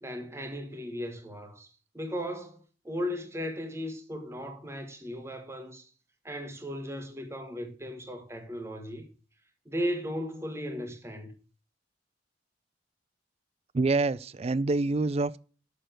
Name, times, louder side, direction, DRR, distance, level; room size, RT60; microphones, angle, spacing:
voice 1, 0.0-5.9 6.2-9.0 9.6-11.3, equal, 15° right, 1.5 m, -36 dB
voice 2, 13.7-15.4, right 3 dB, 35° right, 0.4 m, -26 dB
6.8 x 6.5 x 7.5 m
head